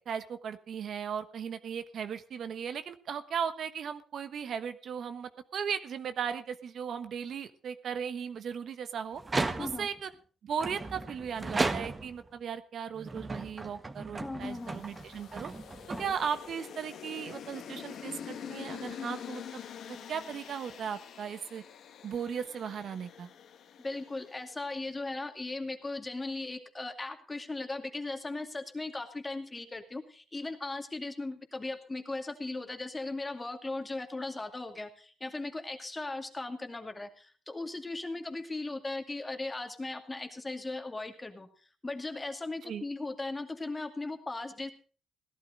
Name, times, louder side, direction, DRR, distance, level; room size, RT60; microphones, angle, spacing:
voice 1, 0.1-9.2 9.6-10.1 10.4-15.5 16.0-19.4 19.9-21.6 22.0-23.3 42.6-42.8, right 7 dB, 60° right, 10 dB, 1.2 m, -37 dB
sound 1, 9.2-10.0 10.6-12.3 12.9-16.5, right 3 dB, 25° right, 1.4 m, -35 dB
voice 2, 14.2-14.8 15.9-16.1 23.8-41.5 41.8-44.7, left 2 dB, 20° left, 6 dB, 2.3 m, -38 dB
sound 2, 14.4-24.8, left 8 dB, 70° left, 1.6 m, -46 dB
17.0 x 12.0 x 3.9 m, 0.39 s
cardioid pair, 90°, 0 cm